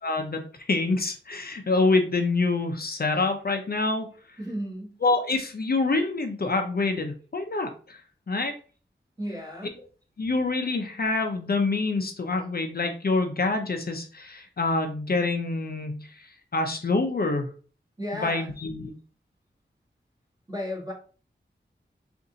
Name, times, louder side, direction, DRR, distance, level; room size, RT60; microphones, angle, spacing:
voice 1, 0.0-4.4 5.0-8.0 8.3-8.5 10.2-17.5 18.1-18.9, left 3 dB, 55° left, 4 dB, 0.6 m, -26 dB
voice 2, 4.4-5.0 9.2-9.7 18.0-18.5 20.5-20.9, equal, 20° right, -3 dB, 1.8 m, -34 dB
3.9 x 2.6 x 3.8 m, 0.39 s
wide cardioid pair, 65°, 19 cm